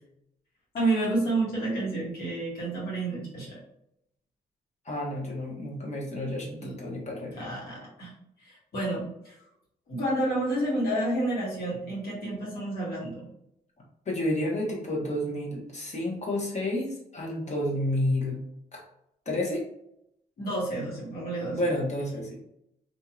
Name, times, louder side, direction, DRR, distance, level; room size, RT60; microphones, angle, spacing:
voice 1, 0.7-3.6 6.6-6.7 7.3-8.1 8.4-9.3 9.9-13.2 20.4-21.6, right 2 dB, 65° left, -7 dB, 1.5 m, -30 dB
voice 2, 4.8-7.5 14.1-18.4 18.7-18.8 19.2-19.6 21.5-22.4, left 1 dB, 45° left, -2 dB, 1.2 m, -30 dB
2.8 x 2.7 x 2.4 m, 0.77 s
supercardioid pair, 55°, 17 cm